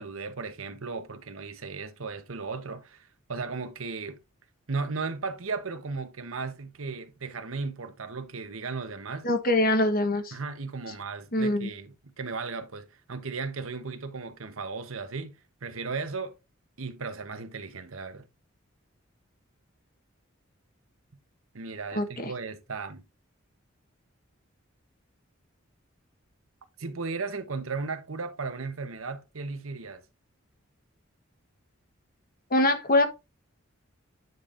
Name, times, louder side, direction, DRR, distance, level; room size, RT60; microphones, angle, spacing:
voice 1, 0.0-4.2 4.7-9.3 10.3-16.3 16.8-18.3 21.5-23.0 26.8-30.0, right 4 dB, 80° right, 1.0 m, -36 dB
voice 2, 9.2-10.3 11.3-11.7 21.9-22.1 32.5-33.1, left 1 dB, 45° left, 1.1 m, -23 dB
9.3 x 5.2 x 2.6 m
head